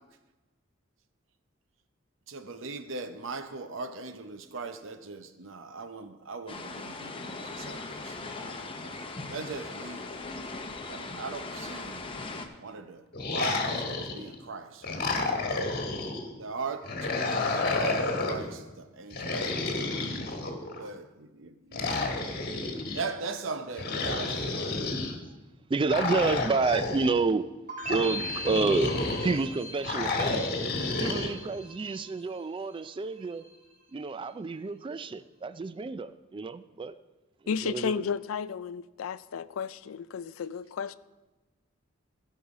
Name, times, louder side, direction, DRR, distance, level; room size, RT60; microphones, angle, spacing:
voice 1, 2.3-9.0 9.3-10.1 10.4-12.1 12.6-13.0 13.3-20.1 20.8-22.4 22.9-24.9, right 4 dB, 65° right, 0.8 m, -40 dB
sound 1, 6.5-12.5, left 3 dB, 25° left, 0.8 m, -39 dB
sound 2, 13.1-14.4 14.8-16.3 16.8-18.5 19.1-20.8 21.7-23.0 23.8-25.1 25.9-27.2 27.8-29.4 29.8-31.3, left 3 dB, 50° left, 1.4 m, -30 dB
voice 2, 25.7-27.5 27.9-28.9 29.2-30.4 31.0-33.5 33.9-36.9 37.4-38.1, right 3 dB, 25° right, 0.3 m, -29 dB
sound 3, 27.7-32.7 33.0-33.7, right 1 dB, 40° right, 3.0 m, -41 dB
voice 3, 37.5-40.9, left 6 dB, 90° left, 0.4 m, -33 dB
16.0 x 5.6 x 4.8 m
head